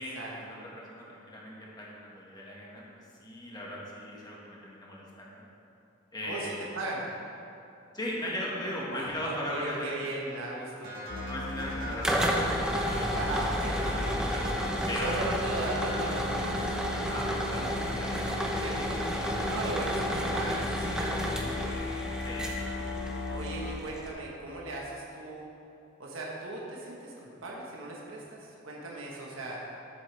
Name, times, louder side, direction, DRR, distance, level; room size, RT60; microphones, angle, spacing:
voice 1, 0.0-2.8 3.2-5.4 6.1-6.6 7.9-10.1 11.2-13.2 14.1-15.2 16.9-18.6 19.1-19.5 22.2-22.6 23.5-23.6, equal, 20° left, -5 dB, 1.7 m, -38 dB
voice 2, 6.2-7.1 8.9-11.0 13.1-14.2 14.9-16.8 18.3-18.8 19.5-21.8 23.3-25.4 26.0-29.6, right 2 dB, 80° right, -3 dB, 1.4 m, -37 dB
sound 1, 10.8-17.5, equal, 45° right, 1.8 m, -43 dB
Musical instrument, 11.1-23.8, left 2 dB, 55° left, 0.5 m, -37 dB
sound 2, 11.6-24.1, equal, 5° right, 0.7 m, -32 dB
12.5 x 7.8 x 3.4 m, 2.7 s
head